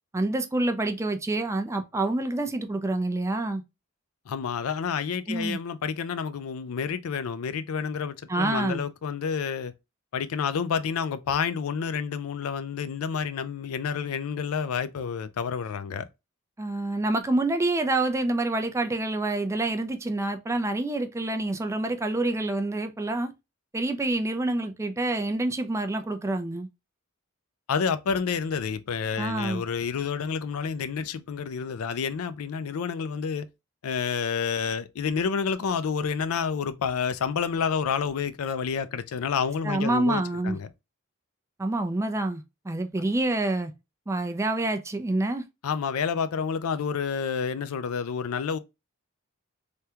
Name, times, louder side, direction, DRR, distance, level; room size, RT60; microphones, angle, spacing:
voice 1, 0.1-3.6 5.3-5.6 8.3-8.8 16.6-23.3 23.7-26.7 29.2-29.6 39.6-40.6 41.6-43.7 44.1-45.4, right 2 dB, 15° right, 0.4 m, -27 dB
voice 2, 4.3-9.7 10.1-16.1 27.7-33.5 33.8-40.7 45.6-48.6, left 6 dB, 85° left, 0.4 m, -29 dB
3.4 x 2.2 x 2.8 m
head